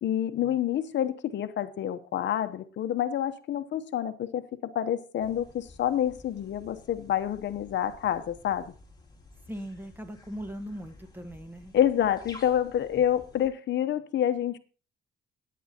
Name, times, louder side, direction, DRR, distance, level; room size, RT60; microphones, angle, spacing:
voice 1, 0.0-8.7 11.7-14.6, left 10 dB, 65° left, 0.8 m, -28 dB
sound 1, 5.2-13.5, left 3 dB, 20° left, 2.6 m, -52 dB
voice 2, 9.5-11.7, equal, 10° right, 1.4 m, -39 dB
16.0 x 9.4 x 2.8 m
cardioid pair, 90°, 20 cm